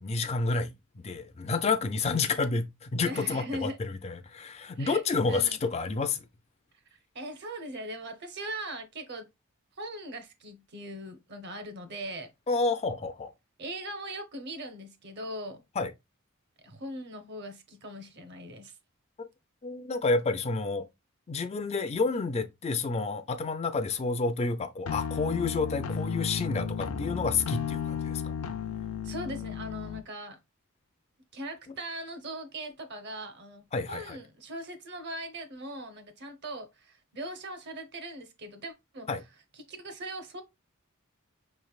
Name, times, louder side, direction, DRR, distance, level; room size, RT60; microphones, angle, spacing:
voice 1, 0.0-6.2 12.5-13.3 15.8-15.9 19.6-20.9 21.3-28.3 33.7-34.2 39.1-39.2, left 4 dB, 30° left, 0.4 m, -29 dB
voice 2, 3.0-3.8 4.8-5.0 5.3-5.6 7.1-9.3 9.8-12.3 13.6-15.6 16.6-18.7 29.0-30.4 31.3-39.1 39.6-40.4, right 1 dB, 50° right, 0.9 m, -40 dB
sound 1, 24.9-30.0, left 6 dB, 90° left, 0.6 m, -34 dB
5.5 x 3.2 x 2.3 m
head